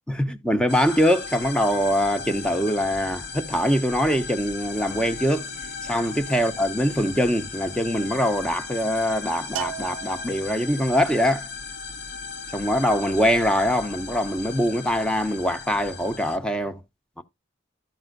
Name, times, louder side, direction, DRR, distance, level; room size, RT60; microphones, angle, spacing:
voice 1, 0.1-5.5 5.8-11.5 12.5-16.8 17.2-17.3, equal, 5° left, 0.9 m, -23 dB
sound 1, 0.7-16.4, left 5 dB, 55° left, 1.3 m, -37 dB
Bell, 9.6-10.9, right 12 dB, 80° right, 0.5 m, -36 dB
13.5 x 5.5 x 2.4 m
head